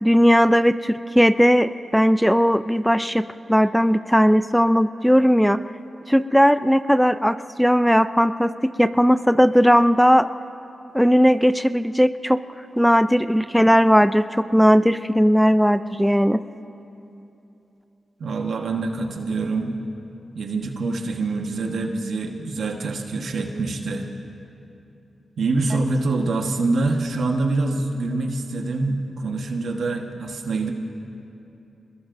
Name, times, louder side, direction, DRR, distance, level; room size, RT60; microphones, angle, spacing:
voice 1, 0.0-5.6 6.1-10.3 10.9-12.4 12.8-16.4, equal, ahead, 12 dB, 0.4 m, -17 dB
voice 2, 18.2-19.7 20.3-24.1 25.4-30.7, right 3 dB, 75° right, 3 dB, 1.3 m, -25 dB
26.0 x 21.0 x 2.6 m, 2.9 s
cardioid pair, 50°, 0 cm